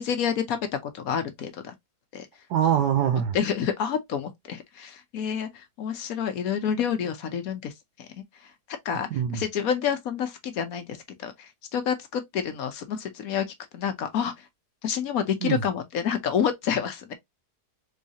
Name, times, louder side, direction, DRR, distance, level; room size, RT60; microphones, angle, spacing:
voice 1, 0.0-1.7 2.1-2.3 3.3-7.7 8.8-13.4 13.7-14.4 14.8-17.1, left 8 dB, 65° left, 1.1 m, -28 dB
voice 2, 2.5-3.4 9.1-9.4 15.4-15.6, right 9 dB, 85° right, 1.3 m, -23 dB
3.8 x 3.1 x 2.7 m
omnidirectional pair, 1.7 m